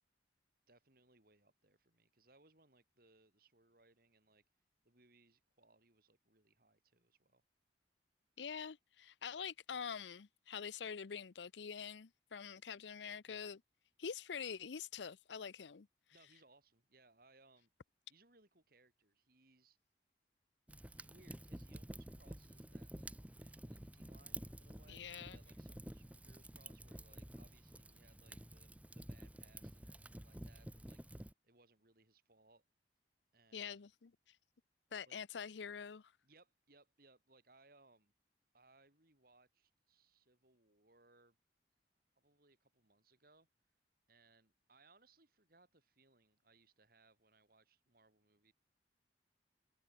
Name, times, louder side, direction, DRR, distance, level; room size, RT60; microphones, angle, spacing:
voice 1, 0.7-4.4 4.8-7.4 13.3-13.4 16.1-17.7 18.1-19.8 20.9-32.7 33.3-33.9 35.1-35.2 36.2-38.1 38.5-41.4 42.2-43.5 44.1-48.5, right 3 dB, 55° right, 4.5 m, -69 dB
voice 2, 8.4-13.6 14.0-15.9 24.9-25.4 33.5-34.1 34.9-36.1, left 7 dB, 80° left, 0.6 m, -46 dB
Fire, 20.7-31.3, right 1 dB, 10° right, 0.9 m, -51 dB
head